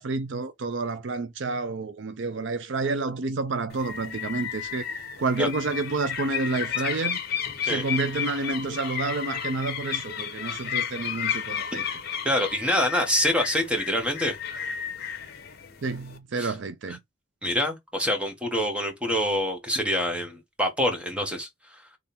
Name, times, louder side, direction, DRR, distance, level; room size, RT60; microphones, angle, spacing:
voice 1, 0.0-4.9 5.2-7.2 7.6-11.9 15.8-17.0, right 3 dB, 60° right, 0.5 m, -29 dB
sound 1, 3.7-16.2, left 8 dB, 50° left, 1.0 m, -33 dB
voice 2, 12.2-14.4 16.4-16.5 17.4-21.5, left 1 dB, 5° right, 1.3 m, -26 dB
3.6 x 3.3 x 4.2 m
head